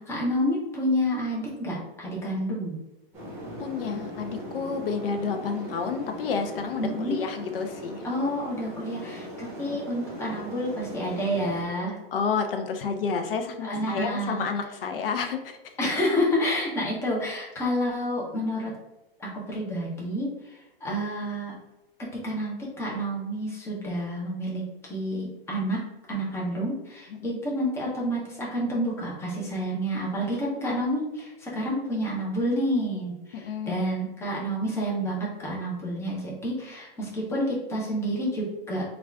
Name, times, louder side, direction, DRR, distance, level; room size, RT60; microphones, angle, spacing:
voice 1, 0.0-2.8 6.8-7.2 8.0-12.0 13.6-14.4 15.8-18.7 19.2-21.5 22.0-25.8 26.1-38.8, equal, 10° left, -4 dB, 0.7 m, -29 dB
sound 1, 3.1-11.6, equal, 10° right, 1.1 m, -39 dB
voice 2, 3.6-8.1 12.1-15.6 27.1-27.4 33.3-33.8, left 5 dB, 70° left, 5 dB, 0.6 m, -30 dB
3.3 x 2.5 x 3.3 m, 0.98 s
hypercardioid pair, 150°, 30 cm